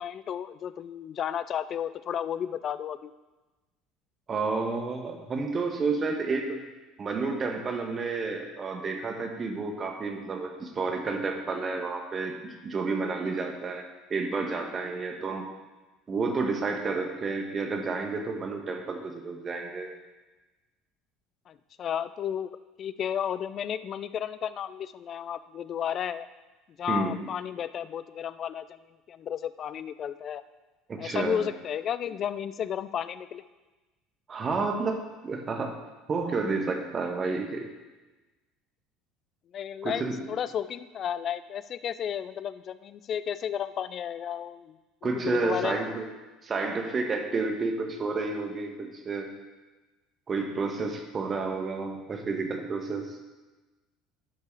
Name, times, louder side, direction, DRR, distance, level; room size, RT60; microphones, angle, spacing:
voice 1, 0.0-3.1 21.5-26.3 26.8-28.7 29.1-30.4 31.0-33.4 39.5-45.9 51.3-51.4, left 9 dB, 45° left, 14 dB, 0.4 m, -33 dB
voice 2, 4.3-6.7 7.0-13.8 14.1-15.5 16.1-19.9 26.9-27.2 30.9-31.5 34.3-35.7 36.1-37.7 39.8-40.2 45.0-46.0 46.4-49.3 50.3-53.2, right 4 dB, 30° right, 4 dB, 1.4 m, -30 dB
10.5 x 5.4 x 4.6 m, 1.2 s
figure-of-eight pair, 65°, 0 cm